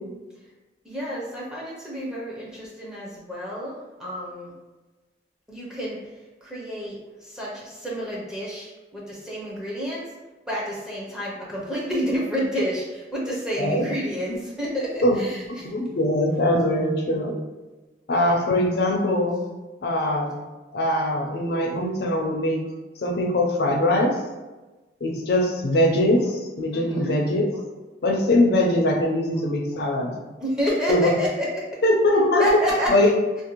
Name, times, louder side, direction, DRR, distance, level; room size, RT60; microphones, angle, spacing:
voice 1, 0.9-3.7 4.0-4.5 5.5-6.0 6.4-7.0 7.3-10.0 10.5-15.4 26.7-27.1 30.4-31.6 32.4-32.9, equal, 5° right, -5 dB, 0.5 m, -29 dB
voice 2, 15.5-17.3 18.1-19.4 19.8-20.3 20.7-22.6 23.0-24.1 25.0-27.5 28.0-30.1 30.9-31.2 31.8-32.5 32.9-33.1, left 1 dB, 60° left, 1 dB, 0.5 m, -22 dB
2.5 x 2.0 x 2.9 m, 1.2 s
head